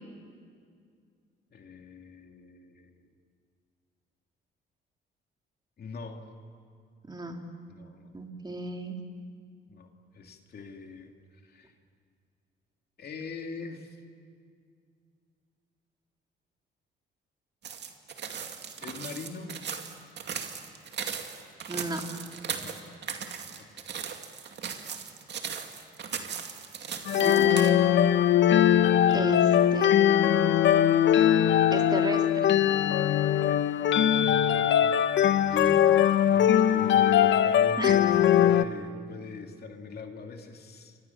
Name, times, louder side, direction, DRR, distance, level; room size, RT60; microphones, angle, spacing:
voice 1, 1.5-3.0 5.8-6.3 7.7-8.2 9.7-11.1 11.4-11.7 13.0-14.0 18.8-19.5 22.6-22.8 23.7-23.9 35.5-35.9 36.3-41.0, left 4 dB, 55° left, 3 dB, 2.7 m, -42 dB
voice 2, 7.1-7.4 8.1-9.0 21.7-22.0 27.2-27.9 29.1-30.5 31.7-32.5 37.8-38.0, right 2 dB, 20° right, 3 dB, 3.1 m, -34 dB
sound 1, 17.6-27.7, right 7 dB, 60° right, 2.4 m, -38 dB
sound 2, 27.1-38.6, left 10 dB, 70° left, 0.9 m, -21 dB
29.5 x 24.5 x 7.2 m, 2.2 s
cardioid pair, 90°, 20 cm